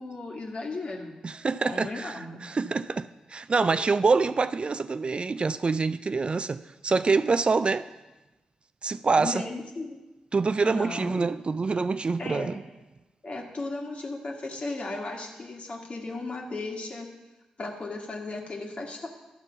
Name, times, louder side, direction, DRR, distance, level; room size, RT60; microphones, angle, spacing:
voice 1, 0.0-1.2 1.6-2.7 3.8-3.9 9.2-10.0 10.6-11.2 12.2-12.5 13.2-17.1 17.6-19.1, left 2 dB, 50° left, 2.0 m, -36 dB
voice 2, 1.2-7.9 8.8-9.4 10.3-12.6, right 4 dB, 40° right, 0.4 m, -26 dB
12.0 x 4.4 x 7.0 m
supercardioid pair, 40°, 3 cm